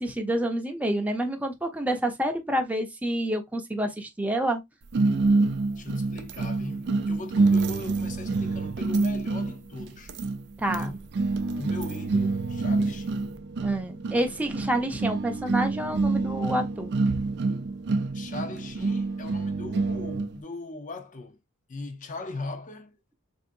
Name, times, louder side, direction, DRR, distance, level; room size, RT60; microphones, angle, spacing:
voice 1, 0.0-4.6 10.6-11.0 13.6-16.9, right 1 dB, 5° right, 0.6 m, -28 dB
sound 1, 4.9-20.4, right 3 dB, 50° right, 0.4 m, -27 dB
voice 2, 5.8-10.2 10.7-11.0 11.5-13.2 18.1-21.4 21.7-23.0, left 3 dB, 35° left, 0.7 m, -39 dB
3.6 x 2.7 x 2.5 m
head